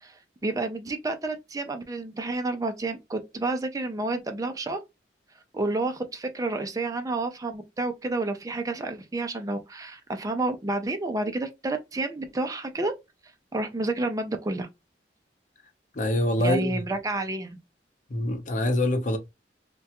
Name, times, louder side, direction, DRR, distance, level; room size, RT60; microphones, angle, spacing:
voice 1, 0.0-4.8 5.5-12.9 13.5-14.7 16.4-17.6, right 2 dB, 20° right, 0.4 m, -30 dB
voice 2, 16.0-16.8 18.1-19.2, left 1 dB, 45° left, 0.7 m, -25 dB
3.4 x 2.2 x 2.8 m
head